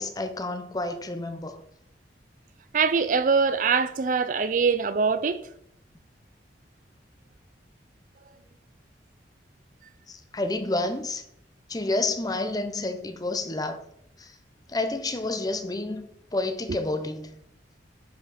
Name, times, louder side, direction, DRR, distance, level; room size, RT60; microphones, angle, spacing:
voice 1, 0.0-1.6 10.1-11.2 11.7-13.8 14.2-14.3 14.7-16.0 16.3-17.4, left 2 dB, 20° left, 0.8 m, -29 dB
voice 2, 2.7-5.4, right 5 dB, 45° right, 0.4 m, -23 dB
10.5 x 5.2 x 4.2 m
head